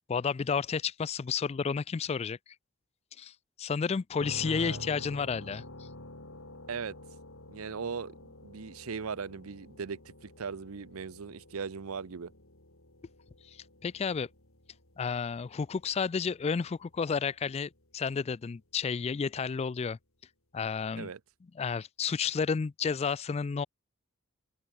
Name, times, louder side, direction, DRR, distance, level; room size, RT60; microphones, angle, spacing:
voice 1, 0.1-2.4 3.2-3.3 3.6-5.9 13.5-14.3 15.0-20.0 20.5-21.1 21.6-23.7, left 5 dB, 30° left, 0.3 m, -31 dB
sound 1, 4.2-17.9, left 1 dB, 80° left, 7.4 m, -49 dB
voice 2, 4.5-4.8 6.7-7.0 7.5-8.1 8.4-12.3 21.0-21.2, right 5 dB, 90° right, 0.7 m, -38 dB
head